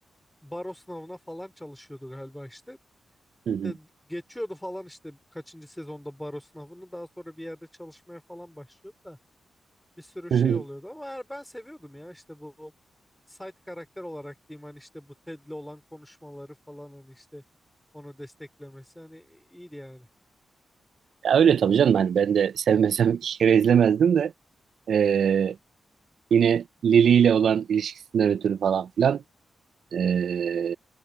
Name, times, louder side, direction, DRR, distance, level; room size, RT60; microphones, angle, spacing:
voice 1, 0.4-2.8 3.6-9.2 10.0-12.7 13.3-17.4 17.9-20.1, equal, 5° left, 3.8 m, -41 dB
voice 2, 10.3-10.6 21.2-24.3 24.9-25.6 26.3-29.2 29.9-30.8, right 8 dB, 75° right, 0.4 m, -21 dB
cardioid pair, 60°, 0 cm